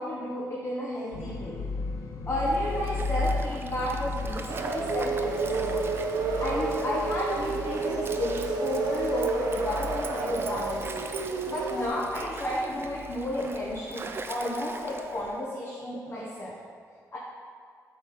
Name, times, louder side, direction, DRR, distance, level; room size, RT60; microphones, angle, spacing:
voice 1, 0.0-1.6 2.3-5.8 6.4-10.8 11.4-16.6 17.1-17.2, left 1 dB, 35° left, -5 dB, 1.2 m, -32 dB
sound 1, 1.1-14.0, left 3 dB, 55° left, 0.6 m, -37 dB
Stream, 2.4-15.4, right 4 dB, 35° right, 0.5 m, -43 dB
sound 2, 4.5-11.9, right 4 dB, 90° right, 0.6 m, -30 dB
7.9 x 3.9 x 4.4 m, 2.1 s
cardioid pair, 90°, 7 cm